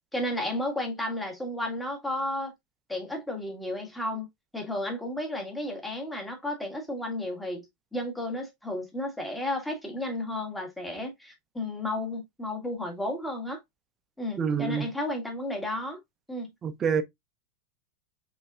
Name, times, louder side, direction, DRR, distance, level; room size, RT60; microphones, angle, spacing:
voice 1, 0.1-2.5 2.9-4.3 4.5-7.7 7.9-13.6 14.2-16.0 16.3-16.5, left 1 dB, 5° left, 1.7 m, -33 dB
voice 2, 14.4-14.9 16.6-17.0, right 7 dB, 30° right, 0.7 m, -26 dB
5.1 x 4.0 x 2.4 m
figure-of-eight pair, 90°, 0 cm